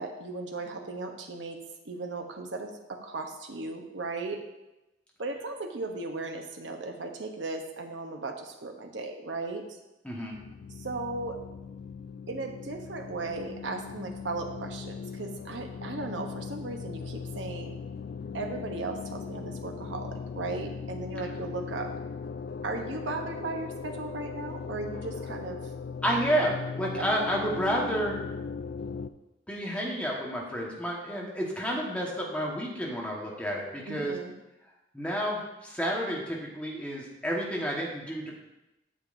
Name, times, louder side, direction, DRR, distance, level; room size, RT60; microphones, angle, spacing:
voice 1, 0.0-1.6 1.8-4.4 5.2-9.6 10.8-11.4 12.3-17.7 18.3-21.9 22.6-25.6 27.0-27.1 33.9-34.3, right 3 dB, 75° right, 3 dB, 0.9 m, -36 dB
voice 2, 10.0-10.4 26.0-28.1 29.5-34.1 34.9-38.3, equal, 5° left, -3 dB, 1.3 m, -30 dB
sound 1, 10.3-29.1, left 5 dB, 55° left, 0.3 m, -39 dB
8.7 x 7.2 x 2.6 m, 0.96 s
head